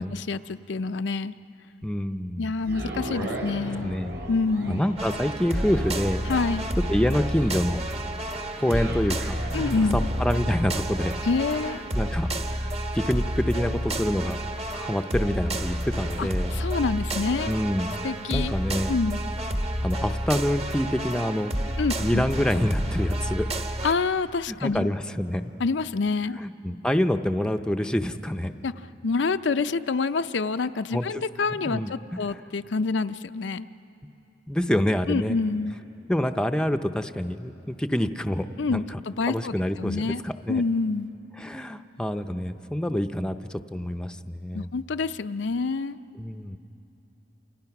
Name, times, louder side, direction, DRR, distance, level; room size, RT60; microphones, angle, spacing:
voice 1, 0.0-1.3 2.4-3.9 4.3-4.8 6.3-6.7 9.5-10.1 11.2-11.8 16.2-17.5 18.0-18.5 18.9-19.2 21.8-22.2 23.8-24.9 25.6-26.4 28.6-28.7 29.0-33.7 35.1-35.8 38.6-40.2 40.5-41.1 44.5-46.0, left 4 dB, 75° left, 10 dB, 0.5 m, -27 dB
voice 2, 1.8-2.5 3.8-4.2 4.7-6.3 6.9-7.9 8.6-9.4 9.9-11.1 11.9-14.4 14.7-16.5 17.5-18.0 18.3-18.9 19.8-21.5 22.0-23.5 24.5-25.5 26.4-28.5 30.9-31.2 31.7-32.4 34.5-35.4 36.1-38.8 39.3-40.6 41.4-44.7 46.2-46.6, equal, 5° left, 7 dB, 0.6 m, -27 dB
sound 1, 2.6-16.8 17.3-17.4, equal, 70° right, 4.3 m, -39 dB
sound 2, 5.0-23.9, right 1 dB, 35° right, 1.2 m, -30 dB
28.5 x 28.0 x 5.9 m, 2.8 s
head